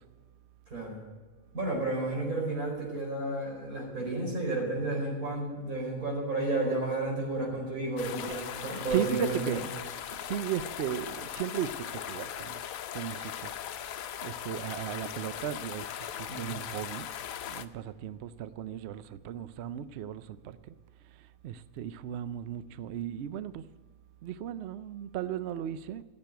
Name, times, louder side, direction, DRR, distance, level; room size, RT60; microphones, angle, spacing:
voice 1, 0.7-1.0 1.5-9.6 16.3-16.6, right 2 dB, 80° right, 5.1 m, -32 dB
sound 1, 8.0-17.7, left 10 dB, 75° left, 1.1 m, -39 dB
voice 2, 8.3-9.6 10.2-12.6 12.9-13.5 14.2-17.1 17.5-20.6 21.4-23.7 24.2-26.0, right 10 dB, 65° right, 0.7 m, -36 dB
15.0 x 7.5 x 9.1 m
omnidirectional pair, 1.5 m